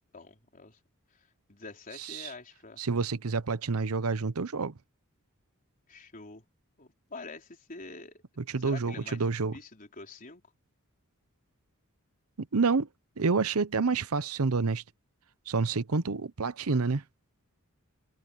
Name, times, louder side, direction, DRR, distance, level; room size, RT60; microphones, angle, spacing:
voice 1, 0.1-0.8 1.1-2.8 5.9-6.4 6.8-8.2 8.6-10.4, left 3 dB, 40° left, 4.2 m, -46 dB
voice 2, 2.0-2.3 2.8-4.7 8.5-9.6 12.4-12.9 13.2-14.8 15.5-17.0, right 4 dB, 85° right, 0.8 m, -28 dB
head